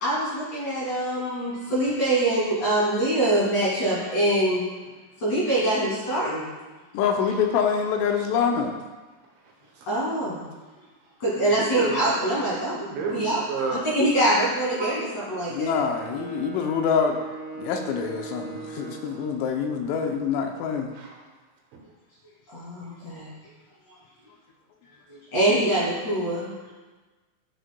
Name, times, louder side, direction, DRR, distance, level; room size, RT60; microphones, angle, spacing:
voice 1, 0.0-4.6 5.2-6.5 9.9-10.5 11.2-12.8 13.1-15.7 22.5-23.3 25.1-26.5, right 1 dB, 45° left, -7 dB, 2.7 m, -24 dB
voice 2, 3.8-4.1 11.4-12.0 12.8-13.8 14.8-15.0 21.0-21.1, right 4 dB, 75° right, -1 dB, 3.1 m, -31 dB
voice 3, 6.9-8.7 15.5-17.2 17.6-20.9, left 6 dB, 85° left, 3 dB, 3.2 m, -25 dB
Wind instrument woodwind instrument, 15.5-19.5, right 4 dB, 35° right, 1.4 m, -39 dB
12.5 x 6.5 x 2.2 m, 1.3 s
omnidirectional pair, 5.8 m